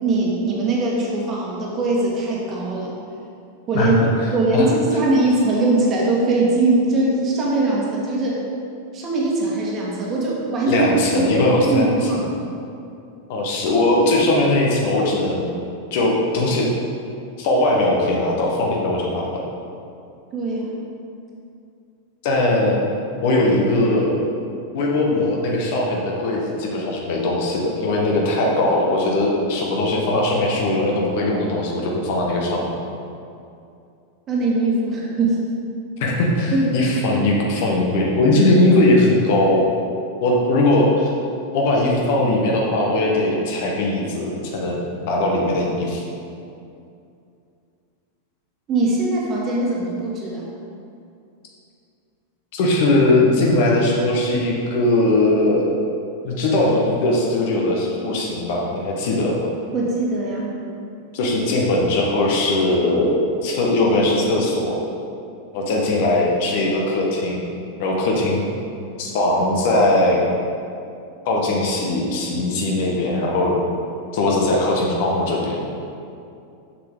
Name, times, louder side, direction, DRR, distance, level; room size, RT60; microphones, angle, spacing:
voice 1, 0.0-2.9 3.7-4.0 4.3-8.4 8.9-10.9 11.1-12.3 20.3-20.8 34.3-35.5 36.5-36.8 48.7-50.4 59.7-60.6, right 2 dB, 30° right, -3 dB, 1.6 m, -21 dB
voice 2, 3.7-4.7 10.7-12.1 13.3-15.5 15.9-16.7 17.4-19.3 22.2-22.8 23.2-24.2 24.7-32.7 36.0-39.7 40.2-41.1 41.5-46.0 52.5-55.7 56.2-59.5 61.1-64.8 65.5-67.4 67.8-68.4 69.0-70.2 71.2-73.6 74.1-75.6, left 2 dB, 50° left, -2 dB, 1.3 m, -19 dB
7.3 x 6.6 x 3.6 m, 2.5 s
figure-of-eight pair, 90°, 0 cm